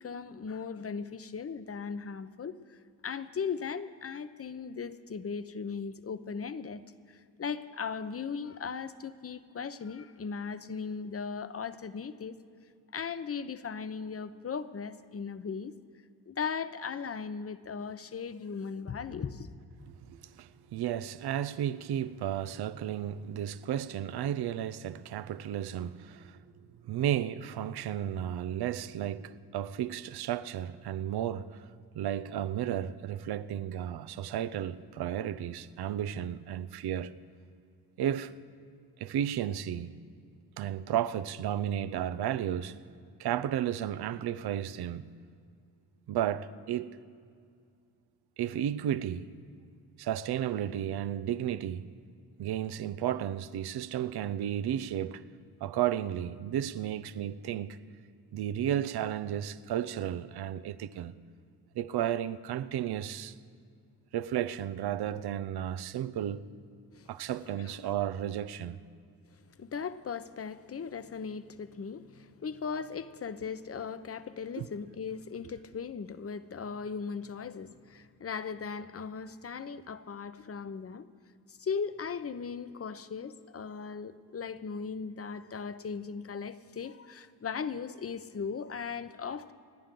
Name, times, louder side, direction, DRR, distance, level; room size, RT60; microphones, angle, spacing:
voice 1, 0.0-2.8 3.0-12.4 12.9-15.7 16.3-19.5 66.9-67.1 67.6-68.0 69.6-81.1 81.5-89.5, left 6 dB, 35° left, 0.9 m, -38 dB
voice 2, 19.9-26.4 26.8-31.6 31.9-37.1 38.0-38.3 39.0-39.9 40.6-42.8 43.2-45.1 46.1-47.0 48.4-49.3 50.0-51.9 52.4-55.2 55.6-57.8 58.3-61.2 61.7-63.4 64.1-66.5 67.1-68.8 74.6-74.7, right 10 dB, 75° right, 0.7 m, -33 dB
29.5 x 10.0 x 3.9 m
supercardioid pair, 60°, 39 cm